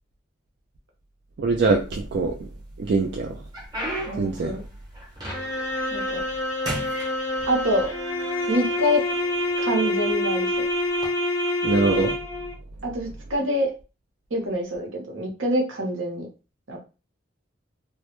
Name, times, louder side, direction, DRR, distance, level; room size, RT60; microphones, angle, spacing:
voice 1, 1.4-2.5 2.8-3.4 4.2-4.6 11.6-12.1, right 3 dB, 55° right, 1 dB, 0.3 m, -23 dB
sound 1, 1.8-2.5 3.0-5.8 6.1-6.4 6.6-7.9 8.7-8.8 9.5-9.7 10.9-11.1, right 1 dB, 20° right, 0.7 m, -34 dB
voice 2, 4.1-4.6 5.9-6.2 7.4-7.9 8.5-9.0 9.6-10.7 12.8-13.7 14.3-16.3 16.7-16.8, equal, 80° right, 1 dB, 0.7 m, -26 dB
sound 2, 5.3-12.5, left 1 dB, 15° left, 0.4 m, -26 dB
2.1 x 2.0 x 2.9 m, 0.32 s
head